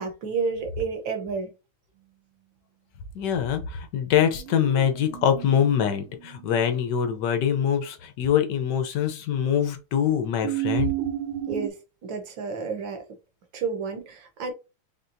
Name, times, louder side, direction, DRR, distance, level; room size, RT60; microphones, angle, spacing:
voice 1, 0.0-1.5 11.5-13.0 13.5-14.5, right 5 dB, 65° right, 1.6 m, -31 dB
voice 2, 3.1-10.9, left 8 dB, 65° left, 1.2 m, -24 dB
sound 1, 4.1-6.7 10.4-11.7, right 13 dB, 80° right, 1.5 m, -32 dB
4.5 x 3.3 x 2.6 m
omnidirectional pair, 2.4 m